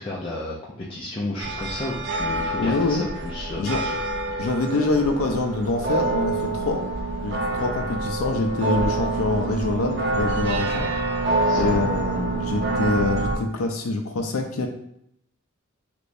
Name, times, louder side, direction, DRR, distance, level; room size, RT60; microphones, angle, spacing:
voice 1, 0.0-4.0 11.4-11.8, left 1 dB, 25° left, -5 dB, 0.4 m, -32 dB
sound 1, 1.4-13.4, right 2 dB, 55° right, 0.4 m, -26 dB
voice 2, 2.6-3.0 3.6-3.8 4.4-6.8 7.2-10.9 11.5-14.7, left 2 dB, 90° left, 3 dB, 0.5 m, -25 dB
3.3 x 2.9 x 2.6 m, 0.73 s
head